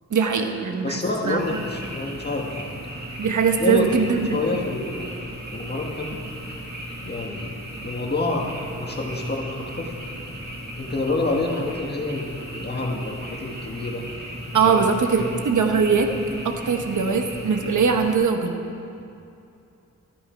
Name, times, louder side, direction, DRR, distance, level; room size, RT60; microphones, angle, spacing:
voice 1, 0.1-1.6 3.2-4.4 14.5-16.1 16.4-18.6, right 5 dB, 75° right, 4 dB, 1.2 m, -21 dB
voice 2, 0.8-2.5 3.6-4.0 4.3-5.1 5.5-6.1 7.0-7.5 7.8-9.9 10.8-14.0 14.6-14.9 15.2-15.4 17.0-17.1, left 2 dB, 35° left, 0 dB, 1.8 m, -27 dB
Frog, 1.4-18.1, equal, 30° right, 2.5 m, -36 dB
15.0 x 13.0 x 4.6 m, 2.6 s
wide cardioid pair, 115°, 30 cm